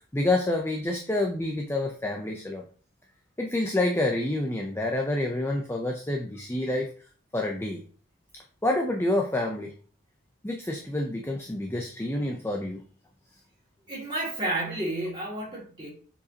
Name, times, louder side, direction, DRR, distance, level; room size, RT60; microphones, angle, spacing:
voice 1, 0.1-2.6 3.4-6.9 7.3-7.8 8.6-9.7 10.4-12.8, left 2 dB, 10° left, 2 dB, 0.5 m, -28 dB
voice 2, 13.9-15.9, right 2 dB, 20° right, -6 dB, 2.1 m, -31 dB
6.9 x 4.9 x 2.8 m, 0.42 s
head